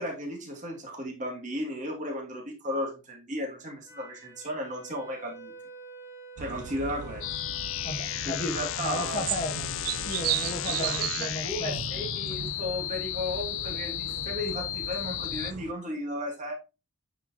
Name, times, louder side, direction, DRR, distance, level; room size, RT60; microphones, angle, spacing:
voice 1, 0.0-5.5 6.4-7.2 8.4-9.2 10.7-16.5, equal, 35° right, 0 dB, 2.3 m, -35 dB
Wind instrument woodwind instrument, 3.9-9.6, right 3 dB, 15° right, 1.5 m, -48 dB
sound 1, 6.4-15.7, right 10 dB, 90° right, 0.4 m, -36 dB
sound 2, 7.2-15.5, left 14 dB, 60° left, 0.4 m, -34 dB
voice 2, 7.8-11.8, left 1 dB, 35° left, 2 dB, 0.8 m, -35 dB
9.1 x 5.0 x 2.8 m, 0.28 s
head